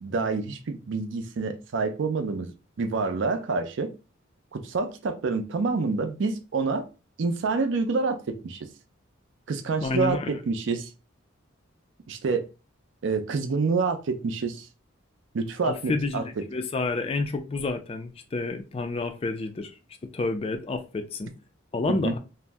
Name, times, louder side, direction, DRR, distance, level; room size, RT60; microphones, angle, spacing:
voice 1, 0.0-3.9 4.5-6.9 7.2-8.7 9.5-10.9 12.1-12.4 13.0-14.7 15.3-16.4 21.9-22.2, right 4 dB, 60° right, 0.4 m, -27 dB
voice 2, 9.8-10.4 15.6-16.2 16.5-19.7 20.1-21.3 21.7-22.2, left 3 dB, 30° left, 0.3 m, -29 dB
2.6 x 2.0 x 3.3 m
head